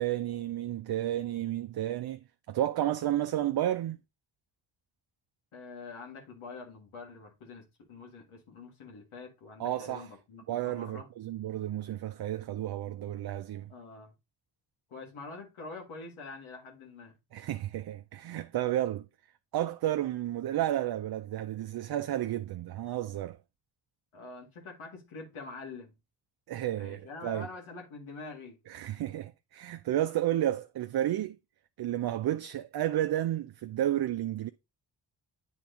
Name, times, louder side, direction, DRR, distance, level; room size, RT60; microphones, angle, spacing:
voice 1, 0.0-2.2 2.5-4.0 9.6-10.1 10.5-13.7 17.3-19.1 19.5-23.4 26.5-27.5 28.7-31.4 31.8-34.5, right 12 dB, 50° right, 0.5 m, -32 dB
voice 2, 5.5-11.1 13.7-14.1 14.9-17.2 24.1-25.9 26.8-28.6, left 3 dB, 80° left, 1.8 m, -45 dB
8.4 x 3.6 x 3.7 m
supercardioid pair, 45°, 48 cm